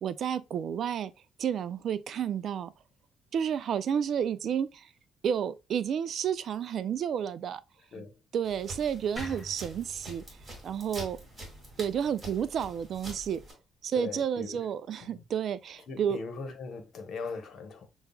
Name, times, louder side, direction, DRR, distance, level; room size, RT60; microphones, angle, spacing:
voice 1, 0.0-1.1 1.4-2.7 3.3-4.9 5.2-7.6 7.9-8.0 8.3-10.2 10.6-11.2 11.8-13.4 13.8-16.2, right 8 dB, 55° right, 0.3 m, -31 dB
sound 1, 8.4-13.5, right 1 dB, 25° right, 2.0 m, -45 dB
sound 2, 9.2-12.3, equal, 5° right, 1.0 m, -46 dB
voice 2, 14.0-14.6 15.0-15.2 15.9-17.9, left 4 dB, 55° left, 0.9 m, -40 dB
6.7 x 2.3 x 2.2 m
cardioid pair, 120°, 0 cm